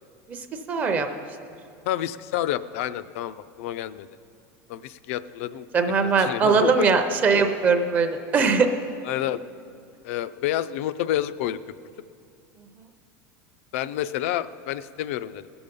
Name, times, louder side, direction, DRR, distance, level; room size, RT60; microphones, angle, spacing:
voice 1, 0.3-1.1 5.7-8.7, right 5 dB, 20° right, 6 dB, 0.6 m, -21 dB
voice 2, 1.9-4.1 4.7-5.7 6.0-6.9 9.1-9.4 10.0-11.6 13.7-15.5, left 12 dB, 65° left, 14 dB, 0.4 m, -29 dB
18.5 x 6.9 x 5.2 m, 2.4 s
supercardioid pair, 170°, 8 cm